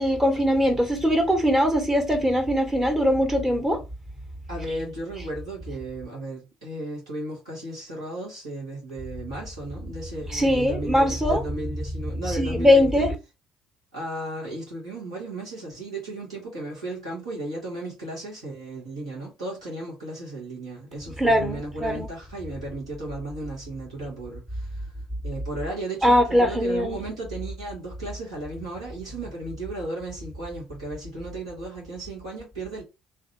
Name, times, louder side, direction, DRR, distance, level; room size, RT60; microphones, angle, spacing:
voice 1, 0.0-3.8 10.3-11.4 12.4-13.1 21.2-22.1 26.0-27.0, equal, 15° right, 1.2 m, -21 dB
voice 2, 4.5-13.0 13.9-24.9 25.2-32.8, right 2 dB, 85° right, 1.6 m, -35 dB
3.1 x 2.5 x 3.0 m
figure-of-eight pair, 50°, 3 cm